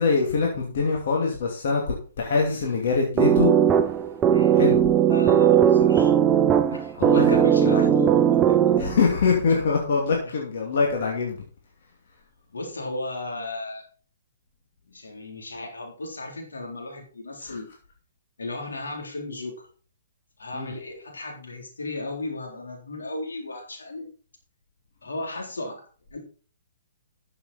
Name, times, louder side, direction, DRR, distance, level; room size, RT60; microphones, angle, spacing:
voice 1, 0.0-3.5 4.5-4.8 7.0-7.8 8.8-11.4 17.4-17.6 20.5-20.7, left 4 dB, 55° left, -1 dB, 2.8 m, -24 dB
voice 2, 2.3-2.6 4.3-4.6 5.1-6.1 6.7-8.6 10.2-10.3 12.5-13.8 14.9-17.7 18.4-19.7 20.4-24.1 25.0-25.8 26.1-26.2, left 2 dB, 80° left, 0 dB, 4.0 m, -35 dB
sound 1, 3.2-9.1, right 9 dB, 20° right, 0.7 m, -19 dB
12.5 x 6.9 x 4.4 m, 0.40 s
figure-of-eight pair, 125°, 0 cm